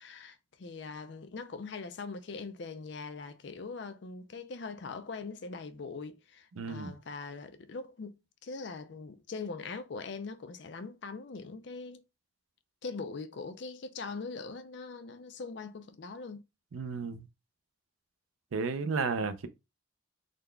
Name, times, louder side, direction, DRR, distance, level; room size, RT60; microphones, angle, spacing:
voice 1, 0.0-12.0 12.8-16.4, left 4 dB, 60° left, 0.4 m, -42 dB
voice 2, 6.6-6.9 16.7-17.3 18.5-19.5, right 4 dB, 85° right, 0.5 m, -33 dB
3.9 x 2.2 x 3.3 m
head